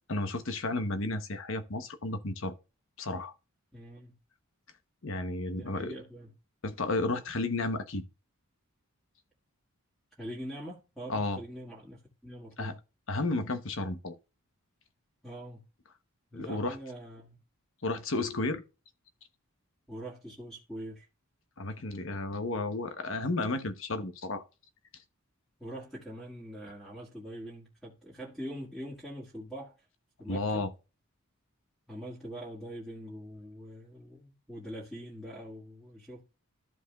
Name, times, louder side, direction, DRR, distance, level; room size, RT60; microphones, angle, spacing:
voice 1, 0.1-2.5 3.0-3.3 5.0-5.9 6.6-8.0 11.1-11.4 12.6-12.8 13.1-14.2 16.3-16.8 17.8-18.6 21.6-24.4 30.3-30.7, left 2 dB, 60° left, 1.0 m, -32 dB
voice 2, 3.7-4.1 5.5-6.3 10.2-12.8 15.2-15.6 16.3-17.4 19.9-21.1 25.6-29.7 30.2-30.7 31.9-36.2, equal, ahead, 1.8 m, -43 dB
13.5 x 4.9 x 2.4 m
head